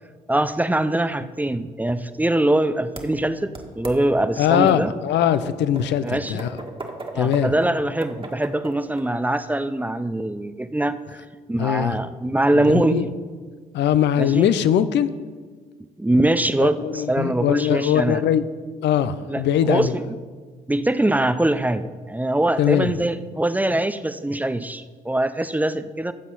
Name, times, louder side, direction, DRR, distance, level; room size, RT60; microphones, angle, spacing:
voice 1, 0.3-4.9 6.0-6.4 7.1-13.0 14.2-14.5 16.0-18.2 19.3-20.0 20.7-26.1, right 1 dB, 10° right, 13 dB, 0.6 m, -23 dB
sound 1, 3.0-3.1 3.5-4.0 4.7-4.8 5.4-9.0, right 3 dB, 25° right, 1.9 m, -35 dB
voice 2, 4.4-6.5 7.1-7.5 11.6-12.0 12.7-13.1 13.7-15.1 16.6-18.5 18.8-19.9 22.6-22.9, left 10 dB, 60° left, 14 dB, 0.6 m, -21 dB
15.0 x 7.3 x 4.1 m, 1.5 s
hypercardioid pair, 50°, 20 cm